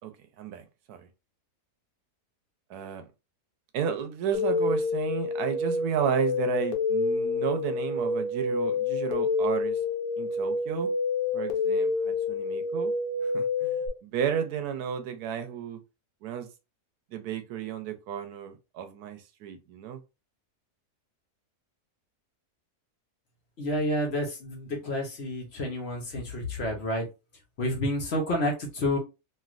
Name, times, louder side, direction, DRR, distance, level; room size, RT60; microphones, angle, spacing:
voice 1, 0.4-1.0 2.7-3.1 3.7-9.8 10.2-10.9 11.3-12.9 13.2-15.8 16.2-16.5 17.1-20.0, right 8 dB, 90° right, 1.1 m, -33 dB
sound 1, 4.3-13.9, left 3 dB, 75° left, 1.2 m, -28 dB
voice 2, 23.6-27.1 27.6-29.0, left 1 dB, 50° left, 0.9 m, -29 dB
3.1 x 2.6 x 2.5 m
omnidirectional pair, 1.6 m